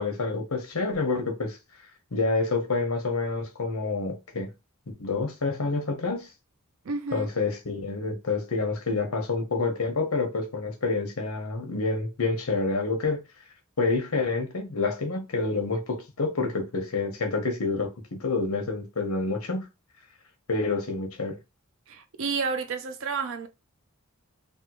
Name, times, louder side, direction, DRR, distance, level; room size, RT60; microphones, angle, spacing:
voice 1, 0.0-1.6 2.1-4.5 5.0-6.3 7.1-13.2 13.8-19.7 20.5-21.4, left 3 dB, 70° left, 0.9 m, -28 dB
voice 2, 6.8-7.3 21.9-23.5, right 4 dB, 60° right, 0.5 m, -30 dB
3.4 x 2.3 x 2.9 m
head